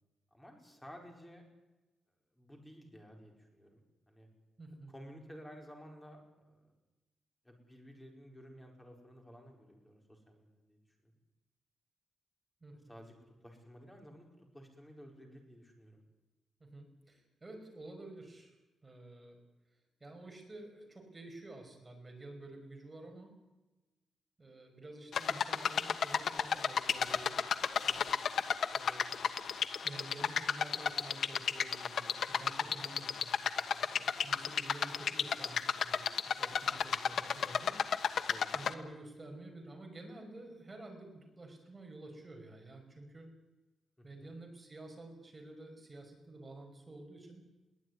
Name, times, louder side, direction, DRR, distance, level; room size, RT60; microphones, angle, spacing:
voice 1, 0.3-1.4 2.4-4.3 4.9-6.7 7.4-10.8 12.9-14.3 14.5-16.0 32.4-32.8 33.7-33.9 36.8-36.9 38.3-38.5 44.0-44.3, equal, 10° left, 2 dB, 4.9 m, -54 dB
voice 2, 4.6-4.9 12.6-13.0 16.6-18.5 18.8-19.4 20.0-23.3 24.4-27.3 27.8-28.2 28.7-29.5 29.8-33.4 34.0-36.1 36.4-37.8 38.5-43.3 44.0-47.4, right 2 dB, 15° right, 2 dB, 5.9 m, -50 dB
sound 1, 25.1-38.7, left 7 dB, 55° left, 1.3 m, -33 dB
22.0 x 18.0 x 9.7 m, 1.1 s
wide cardioid pair, 160°, 0 cm